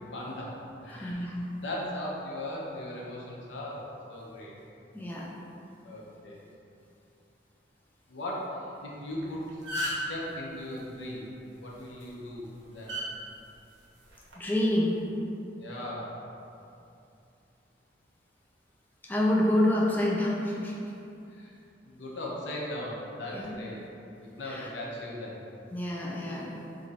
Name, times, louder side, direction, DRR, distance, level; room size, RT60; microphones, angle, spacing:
voice 1, 0.1-0.5 0.8-1.3 1.6-3.8 4.1-4.5 5.8-6.4 8.1-9.6 9.9-11.3 11.6-13.0 15.6-16.1 21.3-21.6 21.8-23.8 24.2-25.4, left 1 dB, 85° left, -4 dB, 0.7 m, -38 dB
voice 2, 0.9-1.5 4.9-5.3 14.4-15.0 19.0-20.7 23.3-23.5 24.4-24.7 25.7-26.6, left 1 dB, 10° left, -4 dB, 0.3 m, -27 dB
sound 1, 9.1-9.2 9.5-10.2 11.8-12.0 12.9-13.1 14.1-14.3, equal, 75° right, 0.8 m, -32 dB
3.1 x 2.5 x 4.0 m, 2.7 s
head